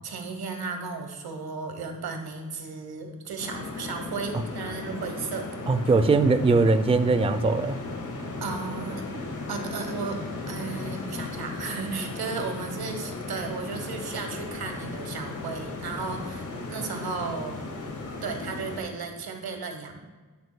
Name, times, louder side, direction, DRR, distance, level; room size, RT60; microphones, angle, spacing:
voice 1, 0.0-5.5 8.4-9.0 9.5-10.2 10.5-17.6 18.2-20.0, right 4 dB, 85° right, 5 dB, 1.1 m, -34 dB
sound 1, 3.4-18.8, left 3 dB, 55° left, 1.5 m, -36 dB
voice 2, 5.7-7.8, right 3 dB, 15° right, 10 dB, 0.4 m, -21 dB
10.5 x 8.2 x 2.2 m, 1.4 s
cardioid pair, 85°, 37 cm